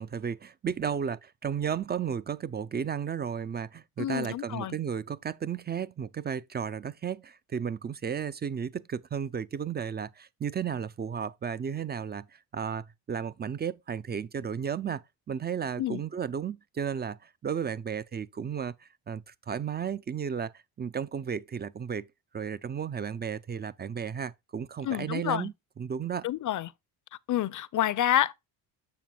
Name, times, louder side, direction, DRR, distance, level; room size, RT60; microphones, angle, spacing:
voice 1, 0.0-20.5 20.8-22.1 22.3-26.3, right 7 dB, 25° right, 0.3 m, -34 dB
voice 2, 4.0-4.8 15.8-16.0 24.8-25.5 26.2-26.7 27.3-28.3, left 12 dB, 40° left, 0.6 m, -28 dB
7.6 x 6.6 x 2.3 m
supercardioid pair, 85°, 49 cm